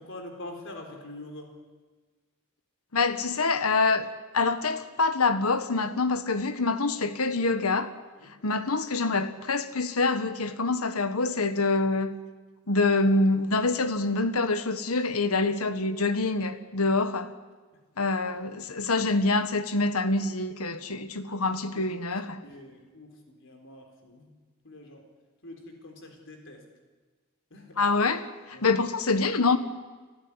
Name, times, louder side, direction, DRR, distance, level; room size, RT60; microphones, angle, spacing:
voice 1, 0.0-1.5 8.2-8.3 21.7-21.9 22.4-24.3 24.6-25.0 25.4-26.6 27.5-27.8 28.5-28.6, left 1 dB, 60° left, 4.2 m, -44 dB
voice 2, 2.9-4.1 4.3-7.9 8.4-12.1 12.7-17.3 18.0-22.4 27.8-29.6, left 3 dB, 75° left, 1.5 m, -26 dB
30.0 x 12.5 x 9.8 m
head